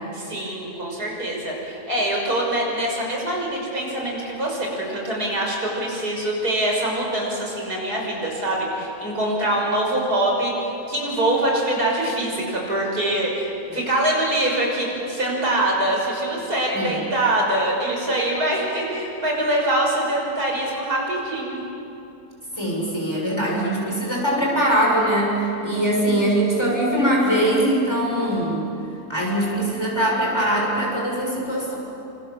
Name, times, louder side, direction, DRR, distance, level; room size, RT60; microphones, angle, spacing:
voice 1, 0.1-21.6, right 1 dB, 85° right, -2 dB, 6.8 m, -24 dB
voice 2, 22.5-28.7 29.1-31.7, right 1 dB, 15° left, -3 dB, 7.3 m, -22 dB
29.5 x 27.0 x 7.4 m, 2.9 s
omnidirectional pair, 1.6 m